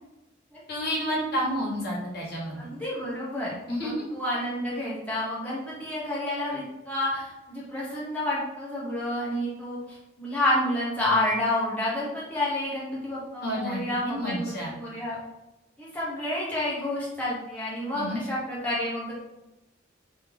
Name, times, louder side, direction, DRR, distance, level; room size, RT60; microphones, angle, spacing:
voice 1, 0.7-2.6 3.7-4.1 13.4-14.7 17.9-18.2, equal, 55° left, -4 dB, 1.3 m, -30 dB
voice 2, 2.6-15.2 15.8-19.1, left 1 dB, 10° left, -7 dB, 0.8 m, -29 dB
3.2 x 2.7 x 3.6 m, 0.97 s
head